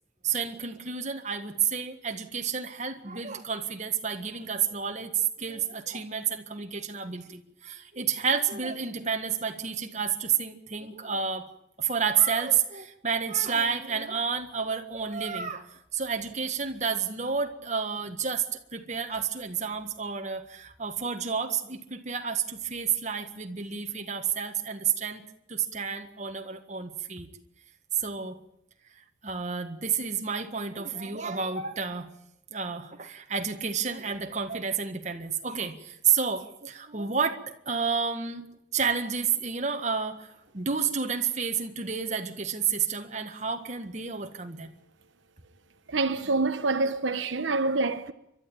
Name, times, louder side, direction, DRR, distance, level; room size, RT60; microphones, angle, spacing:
voice 1, 0.2-11.4 11.8-15.7 15.9-18.5 18.7-27.3 28.0-28.4 29.2-32.1 32.5-38.4 38.7-44.7, right 6 dB, 40° right, 1.7 m, -30 dB
voice 2, 45.9-48.1, right 3 dB, 80° right, 1.0 m, -26 dB
29.5 x 12.5 x 8.8 m
head